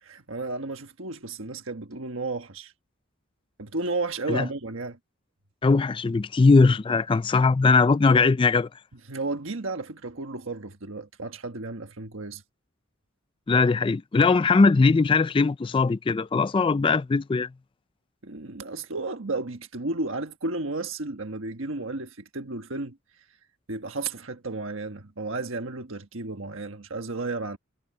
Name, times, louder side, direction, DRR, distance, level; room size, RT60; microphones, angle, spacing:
voice 1, 0.0-2.7 3.6-5.0 9.1-12.4 18.2-23.0 23.7-27.6, right 3 dB, 70° right, 1.4 m, -33 dB
voice 2, 5.6-8.7 13.5-17.5, left 4 dB, 25° left, 0.3 m, -20 dB
head